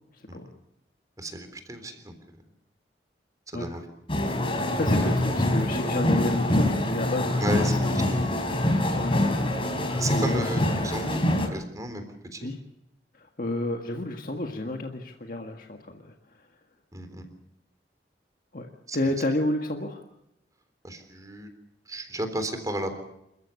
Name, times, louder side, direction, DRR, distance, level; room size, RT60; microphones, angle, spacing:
voice 1, 0.1-0.5 3.5-3.8 4.4-8.1 8.9-9.3 10.1-10.5 12.4-12.6 13.1-16.1 18.5-20.0, left 1 dB, 50° left, 3 dB, 1.7 m, -31 dB
voice 2, 1.2-2.2 3.5-3.9 7.4-8.4 9.7-11.2 11.5-12.0 12.3-12.5 16.9-17.3 18.9-19.0 20.8-21.5 21.9-22.9, right 1 dB, 20° right, 8 dB, 3.6 m, -33 dB
sound 1, 4.1-11.5, left 1 dB, 30° left, 4.0 m, -25 dB
28.0 x 14.5 x 8.3 m, 0.85 s
head